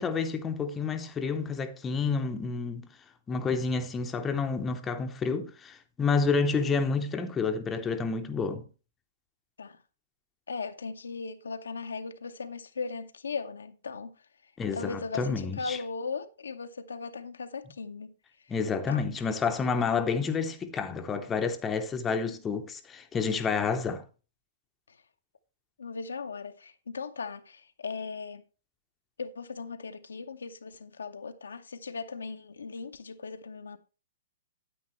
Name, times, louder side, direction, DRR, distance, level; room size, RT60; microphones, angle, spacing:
voice 1, 0.0-2.9 3.3-8.6 14.6-15.8 18.5-24.0, left 5 dB, 15° left, 0.7 m, -29 dB
voice 2, 10.5-14.1 14.7-18.1 18.9-19.0 24.9-25.0 25.8-28.4 29.2-33.8, left 4 dB, 70° left, 0.7 m, -38 dB
9.4 x 8.8 x 3.0 m
figure-of-eight pair, 110°, 0 cm